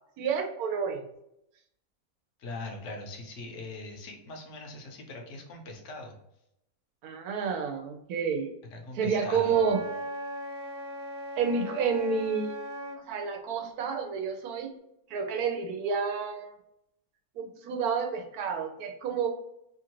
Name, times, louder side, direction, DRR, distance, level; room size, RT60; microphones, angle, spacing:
voice 1, 0.2-1.0 7.0-8.5 9.0-9.8 11.4-12.6 13.1-14.7 15.1-16.5 17.4-19.3, right 6 dB, 90° right, 3 dB, 1.1 m, -29 dB
voice 2, 2.4-6.2 8.7-9.7, left 2 dB, 60° left, 2 dB, 1.0 m, -41 dB
Wind instrument woodwind instrument, 9.5-13.1, right 1 dB, 70° right, 1.0 m, -38 dB
2.9 x 2.5 x 2.9 m, 0.80 s
omnidirectional pair, 1.6 m